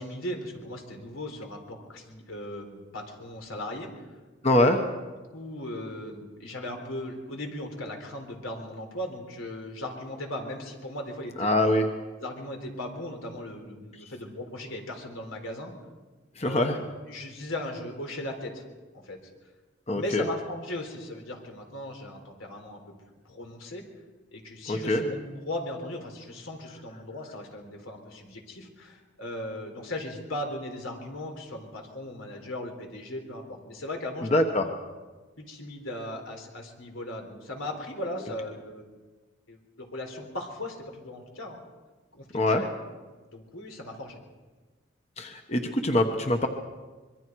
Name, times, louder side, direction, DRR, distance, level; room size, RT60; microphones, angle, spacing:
voice 1, 0.0-4.0 5.3-11.5 12.2-15.7 16.4-18.6 18.9-19.2 19.9-22.8 23.2-23.8 24.3-34.3 35.4-38.8 39.5-41.6 42.1-42.7 43.3-44.2, left 1 dB, 85° left, 3 dB, 4.1 m, -37 dB
voice 2, 4.4-4.8 11.4-11.9 16.4-16.8 19.9-20.3 24.7-25.0 34.2-34.7 42.3-42.6 45.2-46.5, left 1 dB, 30° left, 4 dB, 1.2 m, -24 dB
25.0 x 22.5 x 4.7 m, 1.3 s
head